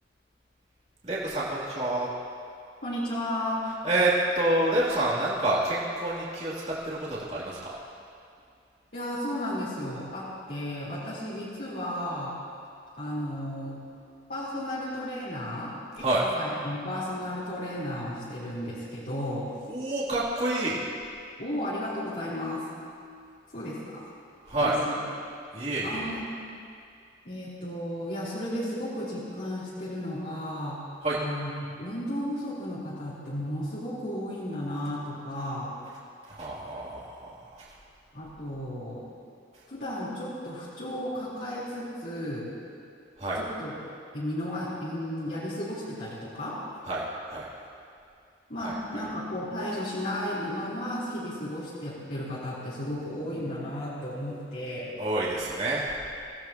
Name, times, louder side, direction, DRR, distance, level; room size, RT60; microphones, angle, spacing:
voice 1, 1.0-2.1 3.8-7.7 16.0-16.2 19.7-20.8 24.4-24.8 25.5-26.2 31.0-31.2 36.3-37.7 43.2-43.4 46.8-47.5 48.6-48.7 55.0-55.9, right 2 dB, 35° right, -7 dB, 3.0 m, -28 dB
voice 2, 2.8-3.6 8.9-12.4 13.0-13.9 14.3-19.5 21.4-22.7 23.5-24.0 24.6-25.0 25.8-26.4 27.2-30.9 31.1-35.8 38.1-39.1 39.7-42.5 43.3-43.7 44.1-46.6 48.5-55.0, left 1 dB, 55° left, -10 dB, 4.0 m, -34 dB
25.5 x 17.0 x 3.0 m, 2.4 s
head